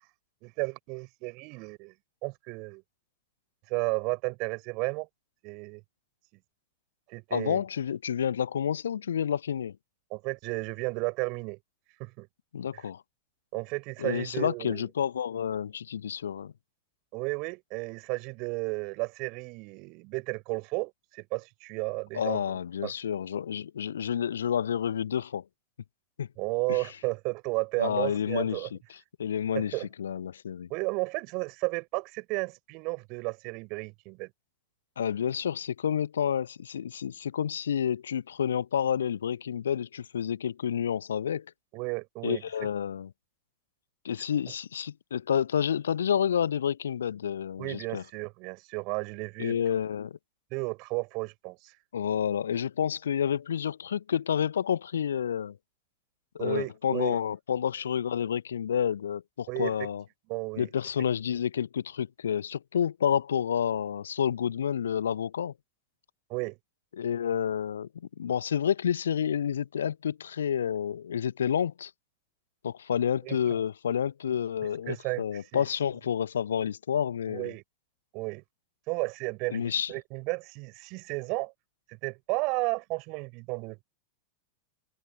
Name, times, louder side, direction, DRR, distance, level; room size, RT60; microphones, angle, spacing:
voice 1, 0.4-1.9 2.2-2.8 3.7-5.1 5.4-5.8 7.1-7.6 10.1-11.6 12.0-12.3 12.7-12.8 13.5-14.9 17.1-22.4 22.8-22.9 26.4-28.7 29.5-29.9 30.7-34.3 41.7-42.4 47.6-49.6 50.5-51.7 56.4-57.2 59.5-59.7 60.3-60.7 66.3-66.6 73.2-73.4 74.9-75.2 75.5-75.7 77.3-77.6 78.1-78.4 78.9-81.5 81.9-83.8, right 28 dB, 45° right, 6.5 m, -33 dB
voice 2, 7.3-9.7 12.5-13.0 14.0-16.5 22.1-25.4 26.2-26.3 26.7-26.8 27.8-28.8 29.2-30.7 35.0-41.5 42.2-43.1 44.0-48.0 49.4-50.2 51.9-55.6 56.4-60.0 60.6-65.5 67.0-67.9 68.2-71.9 72.6-77.5 79.5-79.9, left 8 dB, 65° left, 1.3 m, -29 dB
figure-of-eight pair, 90°, 0 cm